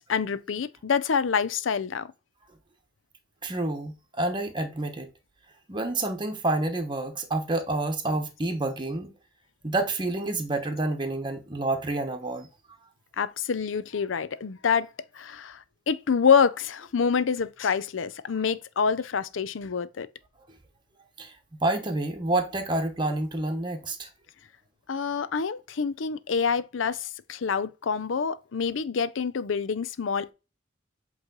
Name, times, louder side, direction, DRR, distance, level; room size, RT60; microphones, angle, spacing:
voice 1, 0.0-2.1 13.2-14.9 15.2-15.6 15.9-20.1 24.9-30.3, left 6 dB, 80° left, 0.6 m, -26 dB
voice 2, 3.4-5.1 5.7-9.1 9.6-12.5 21.2-21.3 21.6-24.1, right 2 dB, 25° right, 1.0 m, -28 dB
8.0 x 3.2 x 3.8 m
head